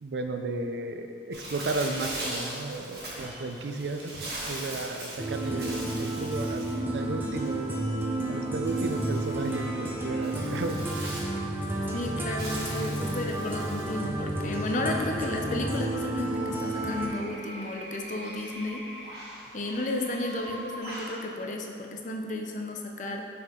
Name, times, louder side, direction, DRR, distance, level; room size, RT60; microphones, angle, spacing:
voice 1, 0.0-6.6 6.9-11.1, right 2 dB, 75° right, 6 dB, 0.4 m, -34 dB
Bird, 1.3-21.2, right 1 dB, 60° right, 1.4 m, -41 dB
sound 1, 5.2-17.1, right 2 dB, 10° right, 0.6 m, -31 dB
voice 2, 11.9-18.8 19.5-23.2, left 2 dB, 45° left, 2 dB, 0.5 m, -33 dB
6.1 x 4.7 x 3.7 m, 2.5 s
head